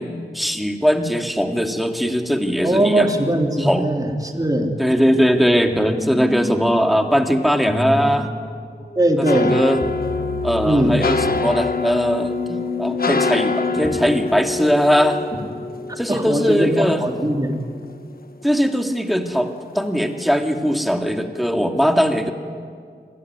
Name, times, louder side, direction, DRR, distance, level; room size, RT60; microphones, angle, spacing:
voice 1, 0.0-3.1 3.6-3.9 4.8-8.3 9.2-9.8 10.4-15.2 16.0-17.0 18.4-22.3, equal, ahead, 4 dB, 2.4 m, -20 dB
voice 2, 2.6-4.7 9.0-9.6 10.6-10.9 16.1-17.5, right 1 dB, 20° right, 2 dB, 3.7 m, -20 dB
sound 1, 5.7-16.5, left 2 dB, 35° left, 3.7 m, -30 dB
sound 2, 9.3-18.5 18.9-19.9 20.2-20.6 20.9-21.0, left 3 dB, 55° left, 1.2 m, -26 dB
26.0 x 17.0 x 9.6 m, 2.1 s
cardioid pair, 50°, 18 cm